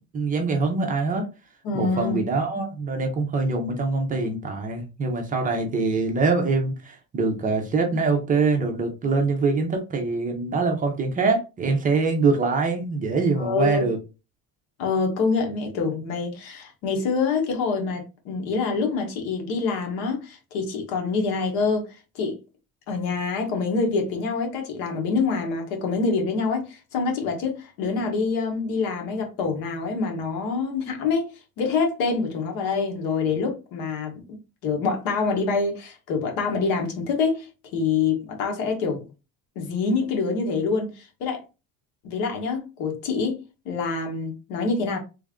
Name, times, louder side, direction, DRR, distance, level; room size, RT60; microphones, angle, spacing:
voice 1, 0.1-1.3 1.7-14.0, right 3 dB, 25° right, 0.6 m, -24 dB
voice 2, 1.6-2.2 13.4-13.8 14.8-21.9 22.1-22.4 22.9-31.3 31.6-39.0 39.5-41.4 42.0-43.4 43.6-45.0, left 4 dB, 75° left, 1.2 m, -26 dB
3.2 x 2.5 x 3.5 m
cardioid pair, 165°, 35 cm